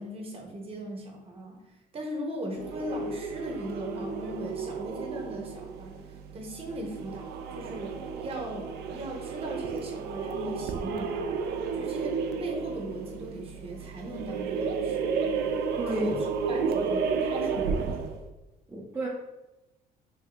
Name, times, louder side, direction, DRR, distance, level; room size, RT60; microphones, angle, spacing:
voice 1, 0.0-1.6 1.9-6.0 6.3-11.3 11.7-15.0 15.9-16.2 16.5-18.1, right 1 dB, 35° right, 1 dB, 0.8 m, -38 dB
sound 1, 2.5-18.2, right 5 dB, 75° right, 0.4 m, -32 dB
voice 2, 15.8-16.1 18.7-19.1, right 1 dB, 15° right, -3 dB, 0.4 m, -31 dB
2.7 x 2.7 x 3.2 m, 1.0 s
cardioid pair, 110°, 17 cm